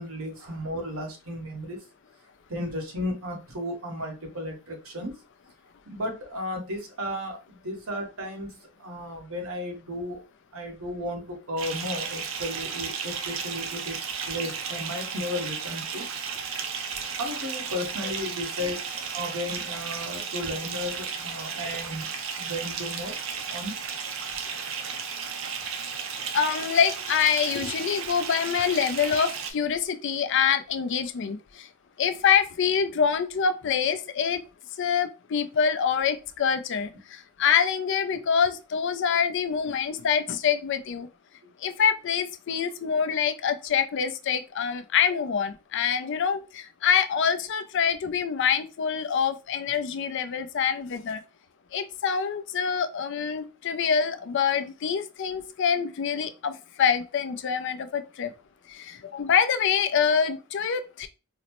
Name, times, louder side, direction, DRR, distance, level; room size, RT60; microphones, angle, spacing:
voice 1, 0.0-1.8 2.5-5.1 5.9-10.2 10.5-14.0 14.3-16.1 17.1-18.8 19.1-23.2 23.5-23.7 38.1-38.2, left 1 dB, 90° right, 1.1 m, -34 dB
Bathtub (filling or washing) / Fill (with liquid), 11.6-29.5, right 6 dB, 65° right, 0.6 m, -34 dB
voice 2, 26.3-31.7 32.0-34.4 34.8-41.1 41.6-51.2 51.7-58.3 58.7-61.1, left 7 dB, 60° left, 0.4 m, -25 dB
3.9 x 2.0 x 2.9 m
head